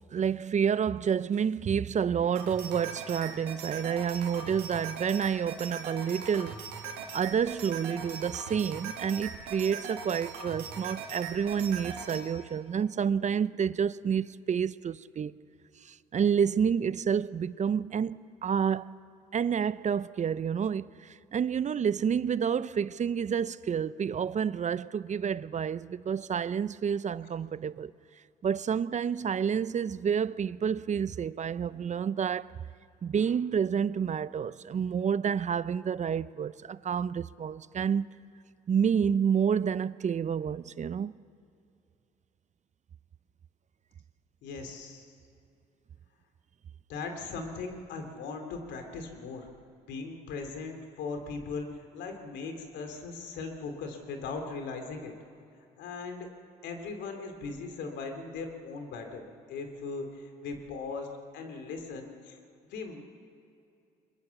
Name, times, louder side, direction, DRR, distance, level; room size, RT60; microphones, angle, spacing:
voice 1, 0.1-6.6 7.1-15.3 15.8-19.0 19.3-27.9 28.4-32.5 33.0-38.1 38.7-41.1, right 7 dB, 40° right, 0.6 m, -29 dB
sound 1, 2.3-12.2, right 5 dB, 90° right, 2.5 m, -40 dB
voice 2, 44.4-45.1 46.9-49.5 49.9-55.1 55.8-56.3 56.6-61.1 61.3-62.4 62.7-63.0, left 4 dB, 75° left, 3.1 m, -39 dB
23.0 x 21.0 x 7.2 m
supercardioid pair, 60°, 18 cm